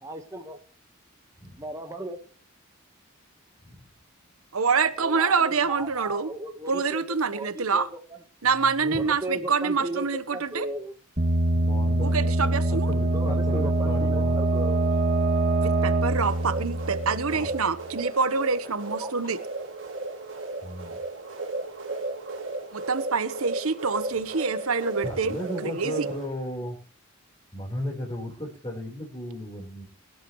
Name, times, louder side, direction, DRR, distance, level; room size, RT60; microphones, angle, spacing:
voice 1, 0.0-0.6 1.6-2.2 5.0-7.0 7.3-7.9 8.9-10.9 13.1-14.8 19.0-19.1, right 1 dB, 15° right, 1.3 m, -36 dB
voice 2, 4.5-6.3 6.7-7.9 8.4-10.7 12.0-12.9 15.6-19.4 22.7-25.4 25.6-26.1, right 5 dB, 80° right, 1.1 m, -26 dB
voice 3, 8.6-9.0 11.5-14.4 17.3-17.5 20.6-21.0 25.0-26.8 27.5-29.8, equal, 25° left, 4.1 m, -35 dB
sound 1, 11.2-17.8, right 2 dB, 35° right, 2.3 m, -24 dB
sound 2, 16.1-26.3, right 2 dB, 60° right, 3.2 m, -35 dB
22.5 x 11.5 x 3.1 m
head